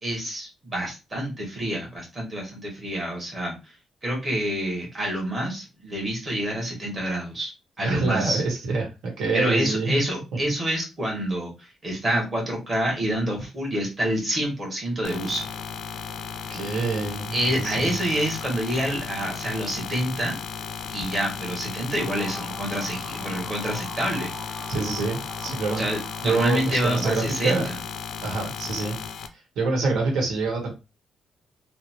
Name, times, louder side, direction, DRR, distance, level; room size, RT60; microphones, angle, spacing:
voice 1, 0.0-3.7 4.0-7.5 7.8-8.4 9.3-15.4 17.3-20.3 20.9-24.6 25.8-27.8, right 1 dB, 25° right, -2 dB, 1.2 m, -27 dB
voice 2, 7.8-10.0 16.5-18.0 24.7-25.8 26.2-27.7 28.2-29.0 29.6-30.7, right 3 dB, 90° right, 2 dB, 1.1 m, -26 dB
sound 1, 15.0-29.3, left 7 dB, 70° left, 0.3 m, -35 dB
sound 2, 22.0-27.1, left 1 dB, 5° left, 0.4 m, -41 dB
2.8 x 2.0 x 2.8 m, 0.27 s
cardioid pair, 165°, 0 cm